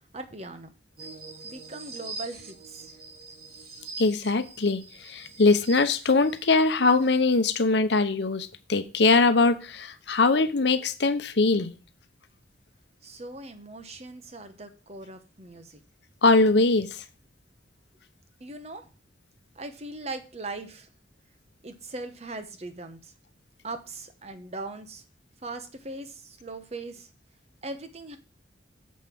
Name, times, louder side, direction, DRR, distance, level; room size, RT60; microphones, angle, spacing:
voice 1, 0.1-0.7 1.4-3.0 13.0-15.8 18.4-18.9 19.5-20.9 21.6-23.1 23.6-25.0 25.4-27.1 27.6-28.2, right 2 dB, 35° right, 8 dB, 1.0 m, -40 dB
sound 1, 1.0-7.2, right 4 dB, 55° right, 1.6 m, -44 dB
voice 2, 4.0-11.7 16.2-17.0, left 3 dB, 65° left, 10 dB, 0.8 m, -22 dB
7.4 x 5.5 x 5.9 m, 0.34 s
head